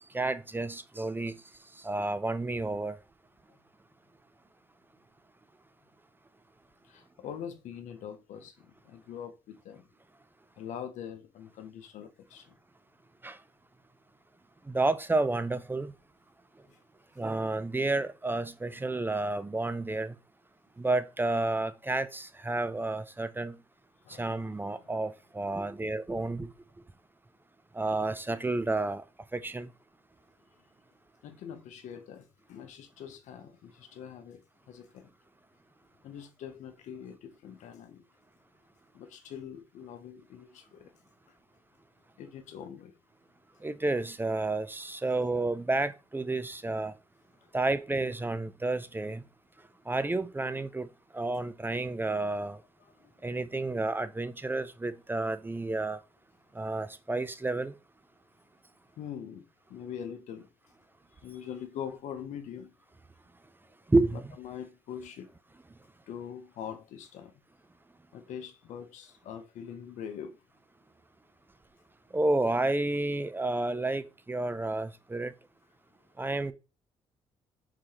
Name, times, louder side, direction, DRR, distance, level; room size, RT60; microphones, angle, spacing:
voice 1, 0.1-1.4 1.8-3.0 13.2-13.4 14.7-15.9 17.2-20.1 20.8-23.6 24.1-26.5 27.7-29.0 29.3-29.7 43.6-46.9 47.5-49.2 49.9-50.9 51.1-52.6 53.2-56.0 56.5-57.7 63.9-64.2 72.1-75.3 76.2-76.5, right 2 dB, 15° right, 0.4 m, -30 dB
voice 2, 6.9-9.9 10.6-12.5 16.7-16.8 24.0-24.4 24.7-24.9 31.2-34.4 34.7-35.1 36.0-38.0 38.9-40.9 42.2-42.9 52.8-53.1 59.0-59.4 59.7-60.5 61.2-62.7 64.1-65.3 66.1-67.3 68.1-70.4, left 8 dB, 75° left, 0.7 m, -43 dB
4.6 x 3.9 x 2.8 m
supercardioid pair, 55°, 13 cm